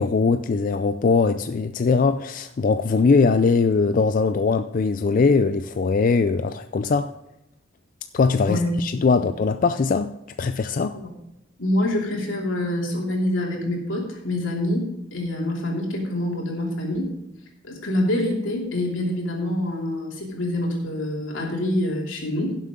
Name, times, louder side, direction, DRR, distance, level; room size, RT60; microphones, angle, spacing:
voice 1, 0.0-7.1 8.1-10.1 10.4-11.0, left 4 dB, 45° left, 0.4 m, -21 dB
voice 2, 11.6-17.1 17.6-22.6, left 1 dB, 85° left, 3.0 m, -26 dB
16.5 x 7.4 x 3.7 m
head